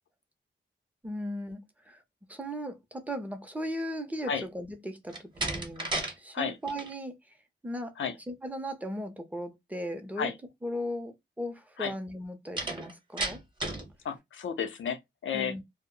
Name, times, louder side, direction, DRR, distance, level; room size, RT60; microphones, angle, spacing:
voice 1, 1.0-2.0 2.3-7.3 7.6-7.9 8.3-10.3 10.6-13.4 15.3-15.6, equal, 10° right, 0.6 m, -37 dB
Slam, 5.1-6.2 6.5-6.9 12.6-13.9, right 2 dB, 25° right, 0.9 m, -33 dB
voice 2, 14.0-15.5, left 7 dB, 85° left, 0.6 m, -32 dB
2.0 x 2.0 x 3.6 m
wide cardioid pair, 115°, 20 cm